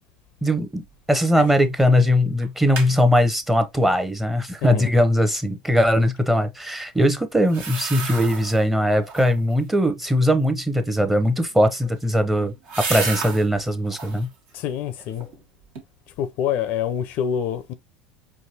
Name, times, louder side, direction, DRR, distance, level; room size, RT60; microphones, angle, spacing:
voice 1, 0.4-12.5 12.9-14.3, equal, 5° right, 0.8 m, -20 dB
sound 1, 1.3-1.7 2.0-2.1 2.4-2.9 7.4-8.6 9.0-9.5 11.5-13.5 13.9-14.3 14.8-15.4 15.8-15.9, right 4 dB, 65° right, 1.4 m, -32 dB
voice 2, 4.6-4.9 14.5-15.3 16.2-17.7, left 9 dB, 60° left, 0.5 m, -26 dB
4.6 x 2.7 x 2.7 m
hypercardioid pair, 80°, 3 cm